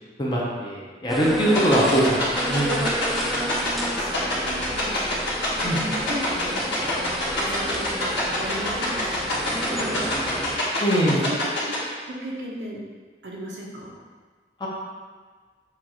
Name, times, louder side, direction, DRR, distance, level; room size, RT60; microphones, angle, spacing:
voice 1, 0.2-2.1 2.5-2.7 5.6-5.8 10.8-11.2 14.6-14.7, equal, 25° left, -5 dB, 0.8 m, -22 dB
sound 1, 1.1-10.6, equal, ahead, 0.3 m, -31 dB
sound 2, 1.5-11.8, left 2 dB, 90° left, 1.4 m, -26 dB
voice 2, 3.9-10.4 11.2-11.8 12.1-12.8 13.2-13.9, right 1 dB, 75° right, -3 dB, 1.0 m, -36 dB
6.8 x 2.6 x 3.0 m, 1.4 s
head